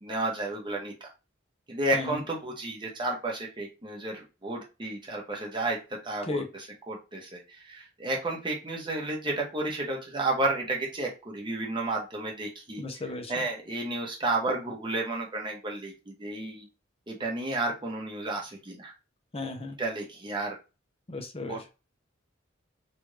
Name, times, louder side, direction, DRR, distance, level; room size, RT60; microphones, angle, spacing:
voice 1, 0.0-1.1 1.7-12.8 13.3-16.7 17.1-18.9 19.8-20.6 21.4-21.7, right 2 dB, 25° right, 1.0 m, -32 dB
voice 2, 12.8-13.3 19.3-19.8 21.1-21.6, left 2 dB, 30° left, 0.7 m, -35 dB
3.3 x 2.5 x 3.2 m
head